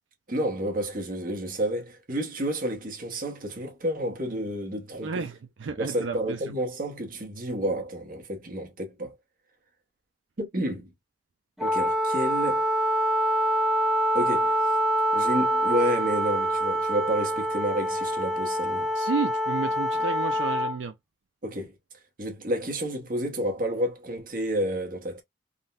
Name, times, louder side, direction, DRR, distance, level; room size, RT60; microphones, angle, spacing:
voice 1, 0.3-5.2 5.8-9.1 10.4-10.9 11.6-12.6 14.1-14.7 15.1-18.9 21.4-21.7 22.2-25.2, equal, 50° right, 1.1 m, -30 dB
voice 2, 5.0-6.6 18.9-21.0, right 5 dB, 80° right, 0.4 m, -32 dB
Wind instrument woodwind instrument, 11.6-20.8, equal, 5° right, 0.5 m, -25 dB
3.6 x 2.2 x 2.4 m
head